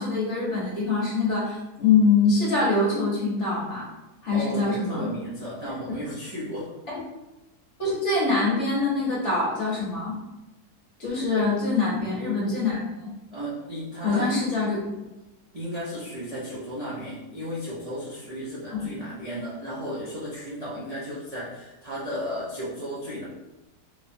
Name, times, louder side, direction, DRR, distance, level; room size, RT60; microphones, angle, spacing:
voice 1, 0.0-3.9 4.2-5.1 7.8-10.2 11.0-13.1 14.0-14.8 18.7-18.9, left 3 dB, 50° left, -6 dB, 1.2 m, -24 dB
voice 2, 4.3-6.7 11.1-11.4 11.8-12.1 13.3-14.3 15.5-23.2, equal, 40° right, -9 dB, 0.5 m, -34 dB
3.3 x 3.1 x 2.6 m, 1.0 s
omnidirectional pair, 1.8 m